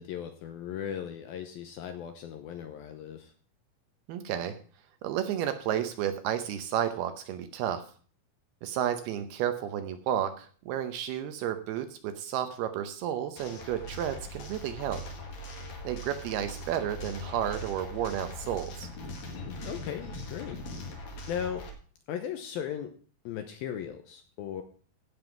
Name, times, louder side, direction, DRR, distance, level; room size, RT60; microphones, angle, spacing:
voice 1, 0.0-3.3 19.6-20.6 21.3-21.7 22.1-22.9 23.2-24.6, left 9 dB, 75° left, 7 dB, 2.3 m, -37 dB
voice 2, 4.1-4.6 5.0-7.8 8.6-15.0 15.8-18.9, right 10 dB, 75° right, 9 dB, 2.5 m, -32 dB
sound 1, 13.4-21.7, left 1 dB, 50° left, 2.7 m, -41 dB
15.5 x 5.5 x 6.0 m, 0.43 s
omnidirectional pair, 5.1 m